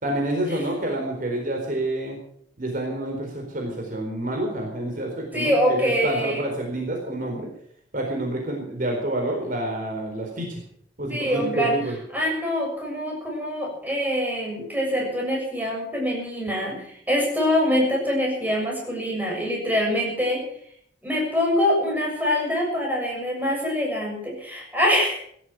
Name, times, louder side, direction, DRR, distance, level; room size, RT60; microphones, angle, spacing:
voice 1, 0.0-2.2 2.6-7.5 7.9-10.6 11.0-11.9, right 1 dB, 45° right, 1 dB, 4.3 m, -28 dB
voice 2, 5.3-6.4 11.1-11.8 12.1-20.4 21.0-25.2, equal, 10° right, -2 dB, 7.0 m, -24 dB
17.5 x 13.0 x 6.1 m, 0.66 s
head